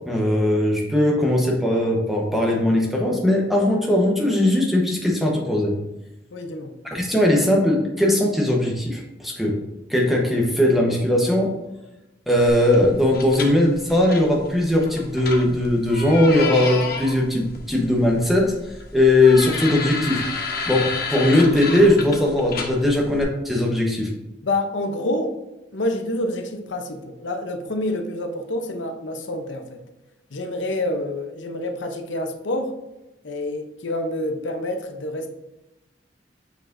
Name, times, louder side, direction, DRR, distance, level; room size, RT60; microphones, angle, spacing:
voice 1, 0.1-5.8 6.8-9.6 9.9-11.5 12.3-18.5 18.9-20.2 20.7-24.1, left 1 dB, ahead, -1 dB, 1.0 m, -19 dB
voice 2, 6.3-6.7 24.4-25.3 25.7-29.8 30.3-32.7 33.2-35.3, left 1 dB, 90° left, 5 dB, 0.8 m, -27 dB
sound 1, 12.5-23.2, left 4 dB, 55° left, 0.9 m, -32 dB
7.0 x 5.8 x 2.6 m, 0.99 s
head